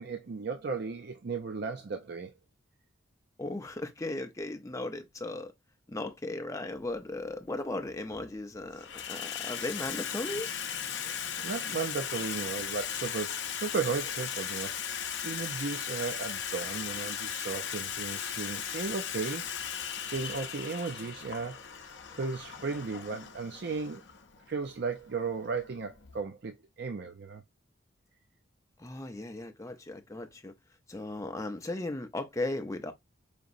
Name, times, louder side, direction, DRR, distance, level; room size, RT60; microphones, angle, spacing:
voice 1, 0.0-2.3 11.4-19.5 20.0-24.0 24.5-27.4, right 4 dB, 50° right, 0.5 m, -35 dB
voice 2, 3.4-5.5 5.9-10.5 28.8-30.5 30.9-32.9, left 2 dB, 15° left, 0.5 m, -36 dB
Water tap faucet / Sink (filling or washing), 6.8-7.0 7.9-8.3 8.6-26.2, left 8 dB, 60° left, 0.6 m, -37 dB
5.1 x 2.9 x 2.5 m
head